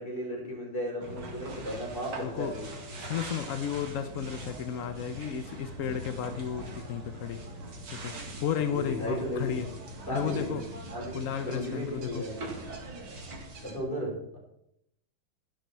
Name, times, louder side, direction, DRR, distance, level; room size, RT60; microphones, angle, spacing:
voice 1, 0.0-2.7 8.5-9.5 10.1-10.6 10.9-12.4 13.6-14.4, equal, 25° left, -3 dB, 5.7 m, -35 dB
sound 1, 1.0-13.8, right 2 dB, 80° right, 3.4 m, -42 dB
voice 2, 2.2-2.5 3.0-7.4 7.9-8.1 8.4-9.7 10.1-10.6 11.1-12.2, left 8 dB, 65° left, 9 dB, 0.8 m, -33 dB
14.0 x 11.5 x 4.6 m, 0.75 s
omnidirectional pair, 2.3 m